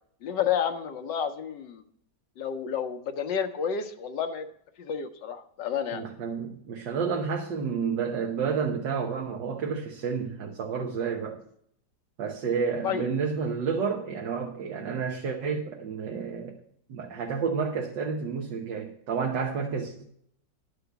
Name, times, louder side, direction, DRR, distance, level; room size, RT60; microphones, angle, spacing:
voice 1, 0.2-1.8 2.4-4.5 4.8-6.0 11.0-11.1 12.8-13.1, left 8 dB, 85° left, 1.6 m, -30 dB
voice 2, 5.9-11.4 12.2-16.6 16.9-20.0, right 6 dB, 85° right, 1.8 m, -30 dB
11.5 x 4.9 x 8.0 m
omnidirectional pair, 1.9 m